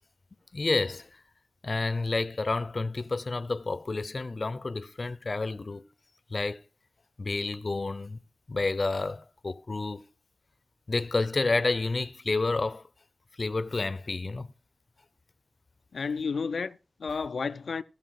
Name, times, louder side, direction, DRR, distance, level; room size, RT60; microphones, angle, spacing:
voice 1, 0.5-1.1 1.6-5.8 6.3-6.6 7.2-8.2 8.5-10.0 10.9-12.8 13.4-14.5, left 3 dB, 45° left, 0.6 m, -30 dB
voice 2, 15.9-17.8, left 5 dB, 85° left, 0.5 m, -32 dB
15.5 x 5.7 x 5.8 m
wide cardioid pair, 85°, 0 cm